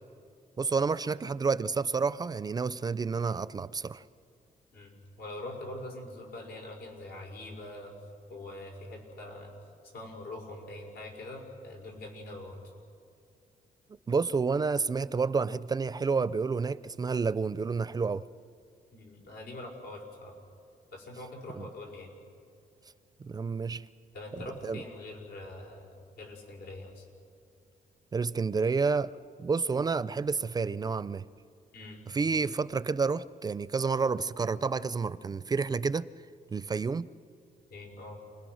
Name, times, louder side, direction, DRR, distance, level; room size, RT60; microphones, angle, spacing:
voice 1, 0.6-4.0 14.1-18.2 21.5-21.6 23.2-23.9 24.6-24.8 28.1-29.1 29.4-31.2 32.1-36.1 36.5-37.1, right 4 dB, 25° right, 16 dB, 0.5 m, -29 dB
voice 2, 4.7-7.9 8.3-9.5 9.9-12.6 18.9-20.3 20.9-22.1 24.1-27.1 31.7-32.0 37.7-38.2, left 2 dB, 85° left, 1 dB, 5.9 m, -43 dB
29.0 x 20.5 x 6.4 m, 2.4 s
cardioid pair, 120°, 15 cm